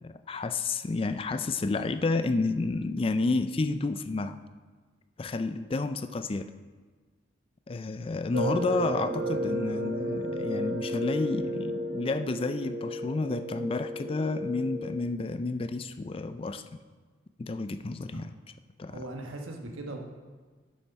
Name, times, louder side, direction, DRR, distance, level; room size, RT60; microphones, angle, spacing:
voice 1, 0.0-4.4 5.2-6.5 7.7-16.6 17.4-18.3 18.8-19.0, left 3 dB, 25° left, 11 dB, 0.3 m, -30 dB
sound 1, 8.3-15.1, equal, 60° right, 0.9 m, -33 dB
voice 2, 17.9-18.2 18.9-20.0, right 2 dB, 85° right, 2 dB, 1.2 m, -40 dB
8.0 x 7.0 x 5.6 m, 1.4 s
head